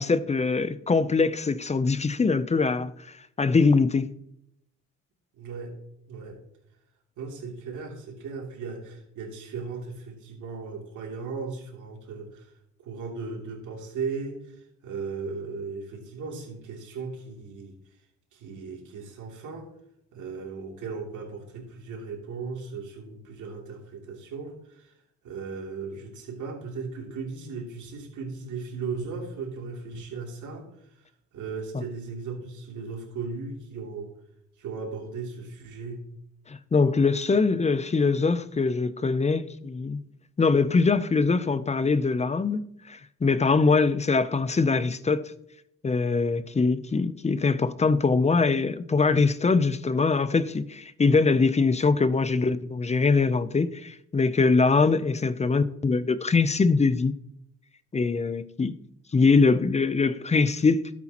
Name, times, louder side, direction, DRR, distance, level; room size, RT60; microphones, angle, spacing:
voice 1, 0.0-2.9 3.4-4.1 36.5-40.0 40.4-45.3 45.8-57.1 57.9-58.7 59.1-60.9, left 4 dB, 20° left, 0.6 m, -23 dB
voice 2, 5.4-5.8 6.1-6.4 7.2-12.5 12.8-14.4 14.8-17.7 18.3-19.7 20.1-24.9 25.2-30.7 31.3-34.1 34.6-36.1, right 4 dB, 80° right, 3.0 m, -36 dB
12.5 x 8.3 x 3.0 m
cardioid pair, 90°, 30 cm